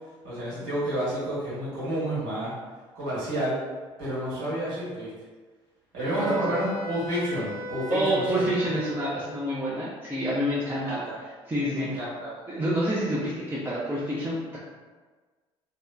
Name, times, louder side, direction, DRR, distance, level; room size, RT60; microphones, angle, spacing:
voice 1, 0.2-2.5 2.9-3.6 4.0-5.1 5.9-8.2 10.8-11.2 11.7-12.3, right 1 dB, 75° right, -9 dB, 1.4 m, -30 dB
Wind instrument woodwind instrument, 6.0-9.4, left 1 dB, 20° left, 0.7 m, -37 dB
voice 2, 6.2-6.5 7.9-11.0 11.5-12.0 12.5-14.6, equal, 15° right, -8 dB, 0.6 m, -28 dB
2.7 x 2.1 x 2.3 m, 1.4 s
hypercardioid pair, 55°, 14 cm